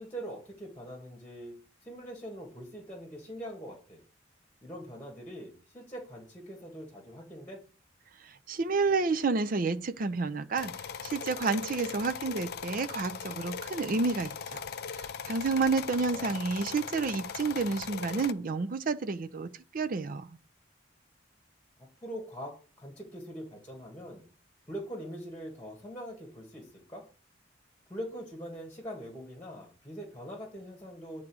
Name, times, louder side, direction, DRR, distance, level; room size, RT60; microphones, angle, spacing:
voice 1, 0.0-1.5 1.8-4.0 4.6-7.6 16.0-16.4 22.0-24.3 24.7-27.0 27.9-31.2, equal, 10° left, 1.7 m, -43 dB
voice 2, 8.2-10.7 11.0-14.7 14.9-20.3, right 4 dB, 45° right, 0.5 m, -30 dB
sound 1, 10.6-18.3, left 6 dB, 50° left, 0.4 m, -39 dB
9.1 x 3.7 x 6.2 m
head